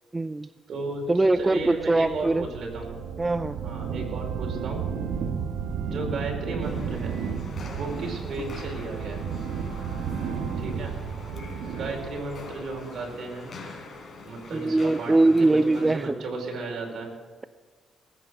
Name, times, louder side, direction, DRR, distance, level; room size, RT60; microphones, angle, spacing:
voice 1, 0.1-0.5 1.1-2.5 3.2-3.6 14.5-16.2, right 2 dB, 20° right, 13 dB, 0.4 m, -22 dB
voice 2, 0.7-1.0 1.4-2.9 3.6-4.9 5.8-7.1 7.8-9.2 10.6-10.9 11.7-13.5 14.2-17.1, right 3 dB, 60° right, 1 dB, 5.1 m, -34 dB
sound 1, 1.4-13.4, right 6 dB, 85° right, 1.4 m, -33 dB
sound 2, 6.6-16.1, left 3 dB, 45° left, 4.3 m, -44 dB
19.5 x 9.1 x 6.5 m, 1.5 s
cardioid pair, 90°, 0 cm